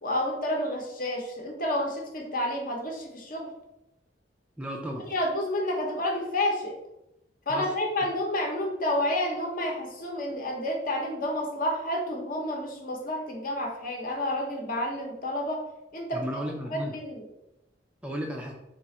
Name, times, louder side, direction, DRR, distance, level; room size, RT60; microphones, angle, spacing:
voice 1, 0.0-3.5 5.1-6.7 7.5-15.6 15.9-16.2 16.7-17.2, left 1 dB, 50° left, 1 dB, 0.8 m, -30 dB
voice 2, 4.6-5.1 7.5-8.1 16.1-17.0 18.0-18.5, equal, 5° right, 0 dB, 0.4 m, -34 dB
3.6 x 2.4 x 4.1 m, 0.89 s
head